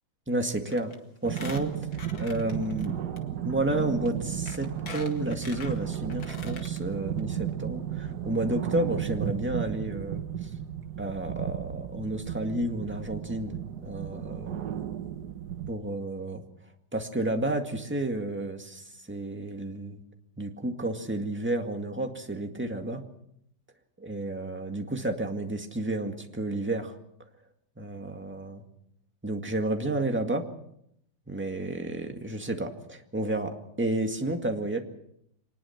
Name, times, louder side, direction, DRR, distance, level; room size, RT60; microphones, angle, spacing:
voice 1, 0.3-0.9 1.2-1.7 2.2-2.9 3.4-10.5 11.0-14.6 15.7-16.4 16.9-20.0 20.4-23.0 24.0-26.9 27.8-28.6 29.2-30.5 31.3-34.8, right 1 dB, 5° right, 4 dB, 1.8 m, -31 dB
Squeak, 0.7-0.9 1.2-2.9 3.2-3.3 4.0-4.1 4.5-6.8 7.2-7.3 7.5-7.6, left 4 dB, 80° left, 2.8 m, -43 dB
sound 1, 1.2-15.7, right 10 dB, 60° right, 1.5 m, -34 dB
25.0 x 20.0 x 5.9 m, 0.74 s
omnidirectional pair, 2.1 m